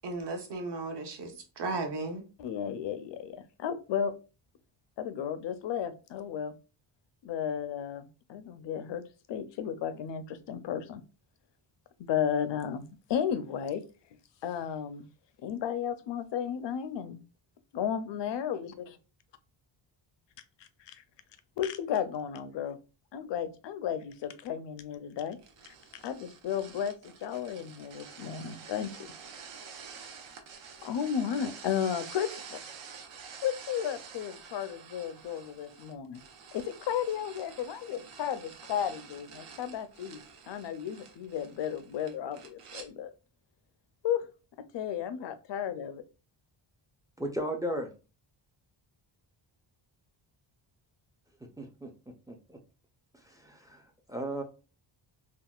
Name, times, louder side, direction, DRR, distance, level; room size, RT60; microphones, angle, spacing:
voice 1, 0.0-2.2, right 3 dB, 55° right, 0.8 m, -35 dB
voice 2, 2.4-4.1 5.0-6.5 7.2-9.0 9.3-11.0 12.0-13.8 14.4-15.1 15.4-17.2 17.7-18.7 20.9-21.0 21.6-22.8 23.1-25.4 25.7-29.1 30.8-32.6 33.4-36.2 36.5-43.1 44.0-44.3 44.7-46.0, left 8 dB, 60° left, 0.5 m, -34 dB
sound 1, 25.4-42.9, right 6 dB, 85° right, 0.8 m, -48 dB
voice 3, 47.2-47.9 51.6-51.9 52.3-52.6 53.1-54.4, right 1 dB, 10° right, 0.3 m, -36 dB
3.7 x 2.1 x 2.3 m
cardioid pair, 110°, 49 cm